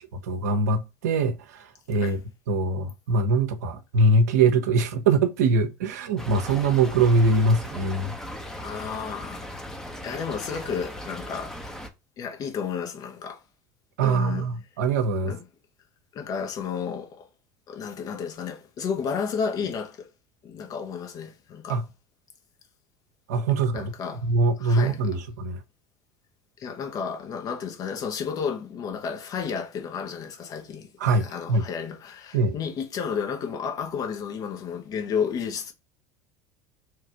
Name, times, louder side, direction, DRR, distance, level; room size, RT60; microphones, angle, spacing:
voice 1, 0.0-2.2 2.5-8.1 14.0-15.4 21.7-21.8 23.3-23.9 24.2-25.6 31.0-31.7 32.3-32.5, right 3 dB, 75° right, 0.6 m, -23 dB
Stream / Trickle dribble, 6.2-11.9, equal, 5° left, 0.8 m, -38 dB
voice 2, 8.6-9.7 10.0-11.6 12.2-13.4 14.0-14.5 15.2-15.4 16.1-17.3 17.7-20.1 20.4-21.8 23.7-24.3 24.6-25.0 26.6-30.9 31.1-35.7, left 6 dB, 45° left, 1.0 m, -32 dB
3.2 x 2.5 x 4.2 m
hypercardioid pair, 75°, 9 cm